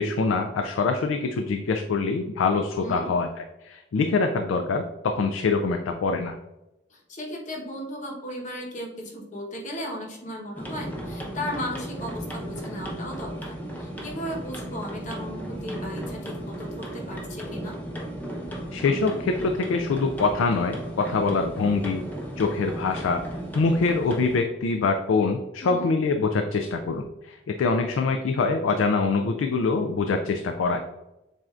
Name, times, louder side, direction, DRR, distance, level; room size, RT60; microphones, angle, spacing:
voice 1, 0.0-6.4 18.7-22.0 22.4-23.2 23.5-30.8, left 4 dB, 85° left, 5 dB, 0.3 m, -24 dB
voice 2, 6.9-17.7 25.6-25.9, equal, 40° left, 0 dB, 0.9 m, -36 dB
sound 1, 10.5-24.4, equal, 10° left, 0.6 m, -35 dB
7.4 x 2.6 x 2.4 m, 0.95 s
head